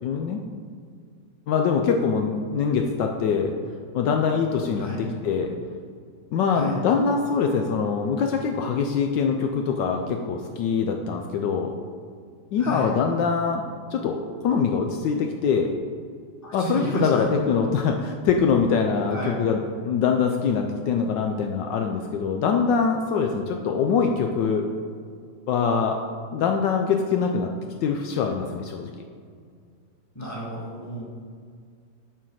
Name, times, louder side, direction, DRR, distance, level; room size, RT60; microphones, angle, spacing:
voice 1, 0.0-0.4 1.5-3.5 3.9-5.5 6.3-11.7 12.5-13.6 13.9-15.7 16.5-24.6 25.5-26.0 26.3-27.5 27.8-28.9, left 6 dB, 75° left, 3 dB, 1.2 m, -23 dB
voice 2, 12.6-12.9 16.4-17.3 19.1-19.3 30.2-31.0, right 2 dB, 10° left, -5 dB, 1.8 m, -32 dB
9.2 x 4.6 x 6.3 m, 2.1 s
omnidirectional pair, 2.1 m